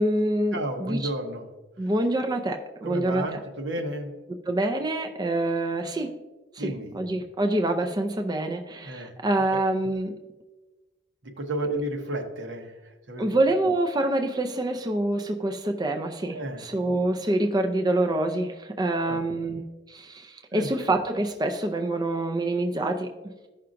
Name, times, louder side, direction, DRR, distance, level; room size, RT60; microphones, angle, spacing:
voice 1, 0.0-1.1 1.8-3.4 4.5-6.1 6.5-10.1 13.2-19.6 19.9-23.1, right 1 dB, 20° right, 4 dB, 0.4 m, -26 dB
voice 2, 0.5-1.5 2.8-4.1 6.6-7.0 8.8-9.1 9.5-9.6 11.2-12.7 13.1-13.4 16.3-16.6 18.9-19.2 20.5-20.7, right 1 dB, 75° right, 3 dB, 1.1 m, -32 dB
14.5 x 5.7 x 2.5 m, 1.2 s
head